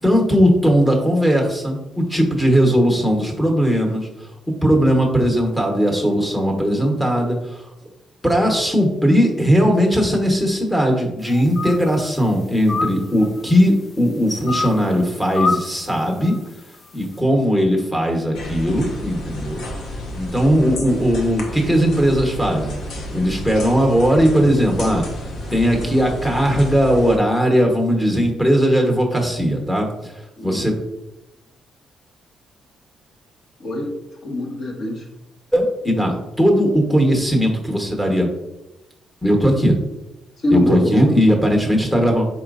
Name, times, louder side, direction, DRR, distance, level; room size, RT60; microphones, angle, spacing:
voice 1, 0.0-4.1 4.5-7.6 8.2-16.3 16.9-19.6 20.1-22.7 23.1-25.0 25.5-30.1 30.4-30.8 35.5-38.3 39.2-39.8 40.5-42.3, equal, 5° left, 0 dB, 1.0 m, -18 dB
sound 1, 11.2-12.1 12.5-13.5 14.5-14.9 15.3-15.8 16.2-16.5, left 3 dB, 35° left, 0.3 m, -25 dB
sound 2, 18.3-27.2, left 1 dB, 70° left, 0.7 m, -31 dB
voice 2, 33.6-33.9 34.2-35.0 40.4-41.2, left 1 dB, 55° left, 0 dB, 1.1 m, -23 dB
4.3 x 4.0 x 2.5 m, 0.95 s
cardioid pair, 90°, 0 cm